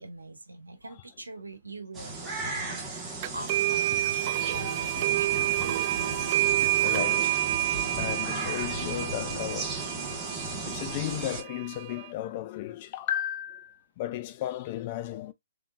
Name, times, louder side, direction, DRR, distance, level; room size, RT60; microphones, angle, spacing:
voice 1, 0.0-5.3, right 2 dB, 85° right, 1.0 m, -44 dB
sound 1, 1.9-11.4, right 3 dB, 15° right, 1.4 m, -36 dB
Cheering / Applause, 3.2-10.9, left 1 dB, 80° left, 1.2 m, -49 dB
sound 2, 3.2-12.1, right 14 dB, 40° right, 0.3 m, -29 dB
voice 2, 4.4-4.8 5.9-6.1 6.6-7.7 8.0-9.8 10.7-15.3, left 13 dB, 40° left, 0.5 m, -35 dB
3.7 x 3.6 x 2.4 m
figure-of-eight pair, 125°, 0 cm